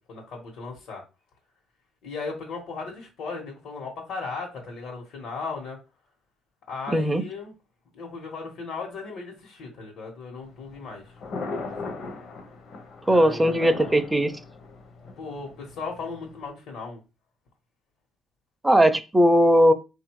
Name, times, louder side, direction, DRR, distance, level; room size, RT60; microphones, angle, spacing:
voice 1, 0.1-1.0 2.0-5.8 6.7-7.5 7.9-11.1 11.8-12.0 13.1-14.0 15.2-17.0, left 4 dB, 65° left, 0 dB, 1.2 m, -36 dB
voice 2, 6.9-7.2 13.1-14.3 18.6-19.7, equal, 10° right, 10 dB, 0.4 m, -19 dB
Thunder, 10.4-16.5, left 3 dB, 45° left, 0.8 m, -38 dB
4.3 x 2.6 x 4.5 m, 0.29 s
cardioid pair, 155°, 0 cm